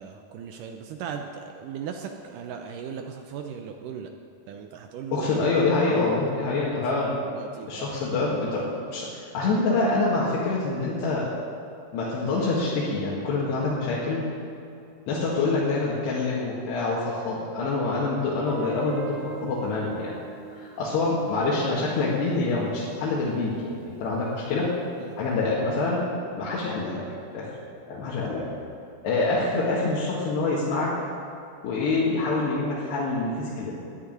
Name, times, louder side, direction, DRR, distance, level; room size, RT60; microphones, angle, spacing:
voice 1, 0.0-4.1 4.5-5.4 5.8-8.0 15.1-15.2 25.0-25.2 28.2-28.3, right 7 dB, 85° right, 4 dB, 1.9 m, -38 dB
voice 2, 5.1-7.1 7.7-11.3 11.9-14.2 15.1-20.1 20.5-24.7 25.2-26.0 26.4-27.0 27.3-27.5 27.9-28.5 29.0-30.9 31.6-33.8, left 3 dB, 90° left, -7 dB, 4.0 m, -26 dB
Guitar, 18.5-23.3, right 3 dB, 65° right, 2.9 m, -40 dB
11.5 x 9.9 x 9.2 m, 2.5 s
omnidirectional pair, 4.7 m